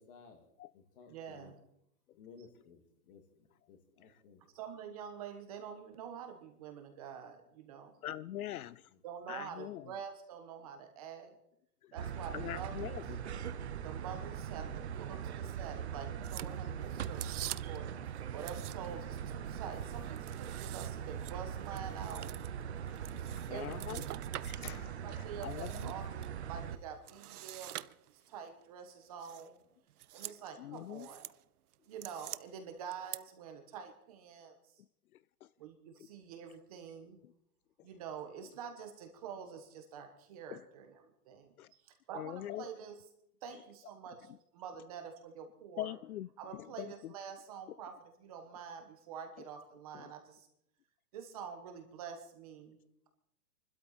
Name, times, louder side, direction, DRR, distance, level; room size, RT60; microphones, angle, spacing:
voice 1, 0.0-0.5 0.7-1.5 2.1-4.4 8.5-9.0, left 5 dB, 35° left, 2.1 m, -58 dB
voice 2, 1.1-1.6 4.5-8.0 9.0-11.3 11.9-13.0 13.8-22.3 23.5-24.1 25.0-29.6 30.1-31.3 31.9-34.8 35.6-37.2 37.8-43.0 43.4-46.0 46.4-50.5 51.1-52.8, right 7 dB, 25° right, 1.3 m, -47 dB
voice 3, 8.0-8.9 9.3-9.9 12.3-13.2 23.4-24.0 24.4-25.9 30.6-31.1 40.5-40.6 41.6-41.7 42.1-42.7 45.8-46.3 46.8-46.9 49.9-50.0, left 13 dB, 70° left, 0.5 m, -42 dB
sound 1, 12.0-26.8, right 8 dB, 45° right, 0.8 m, -41 dB
sound 2, 16.2-17.9 18.4-19.1 19.4-24.8 25.2-26.3 27.0-28.4 29.2-29.5 29.9-30.4 30.7-31.4 31.7-32.4 32.9-33.2, right 13 dB, 75° right, 0.6 m, -46 dB
25.0 x 12.5 x 4.2 m
hypercardioid pair, 175°, 46 cm